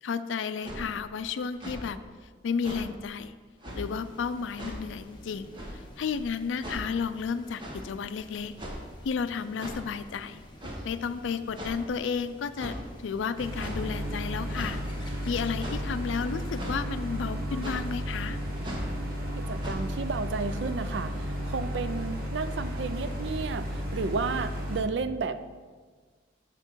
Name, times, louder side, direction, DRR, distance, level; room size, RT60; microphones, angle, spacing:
voice 1, 0.0-2.0 2.4-3.3 3.7-8.5 9.0-10.4 10.8-14.8 15.3-18.4, left 6 dB, 90° left, 12 dB, 0.4 m, -32 dB
sound 1, 0.6-0.8 1.5-1.8 2.6-2.8 3.6-3.8 4.6-4.8 5.5-5.8 6.6-6.8 7.6-7.8 8.6-8.9 9.6-9.8 10.6-10.8 11.6-11.8 12.6-12.8 13.6-13.8 14.5-14.8 15.6-15.8 16.6-16.8 17.6-17.8 18.6-18.9 19.6-19.7, equal, 25° right, 1.2 m, -38 dB
sound 2, 3.7-16.7, left 1 dB, 25° left, 0.9 m, -50 dB
sound 3, 13.4-24.8, equal, 50° right, 1.3 m, -33 dB
voice 2, 19.3-25.4, right 4 dB, 70° right, 12 dB, 0.4 m, -32 dB
6.7 x 5.8 x 4.5 m, 1.5 s
head